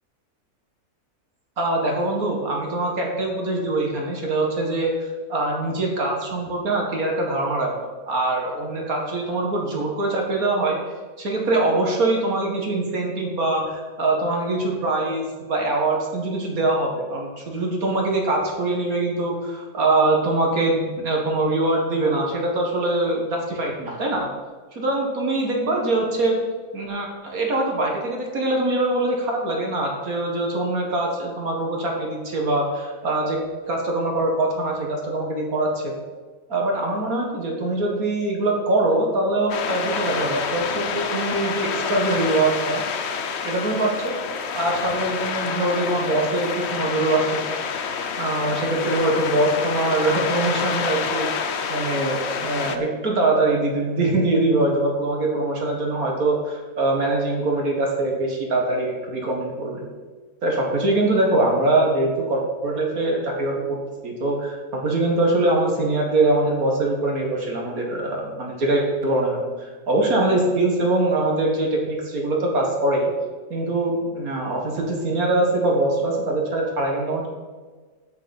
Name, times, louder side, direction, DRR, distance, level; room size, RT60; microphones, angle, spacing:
voice 1, 1.6-7.8 8.1-10.8 11.2-24.3 24.7-26.4 26.7-33.4 33.6-35.9 36.5-42.8 43.4-44.1 44.6-47.4 48.2-59.9 60.4-73.1 73.5-77.3, right 2 dB, 75° right, 0 dB, 2.2 m, -23 dB
sound 1, 39.5-52.8, left 6 dB, 55° left, 0.9 m, -28 dB
8.2 x 6.4 x 7.1 m, 1.4 s
omnidirectional pair, 1.5 m